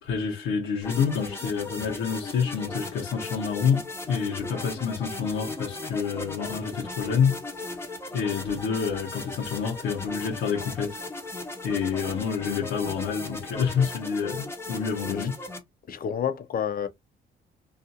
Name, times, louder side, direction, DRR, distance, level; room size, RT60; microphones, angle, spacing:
voice 1, 0.0-7.4 8.1-11.0 11.6-15.3, left 6 dB, 90° left, 0.9 m, -28 dB
sound 1, 0.8-15.6, left 2 dB, 10° left, 0.7 m, -37 dB
voice 2, 15.9-16.9, left 8 dB, 50° left, 0.6 m, -29 dB
2.5 x 2.4 x 2.7 m
cardioid pair, 90°, 20 cm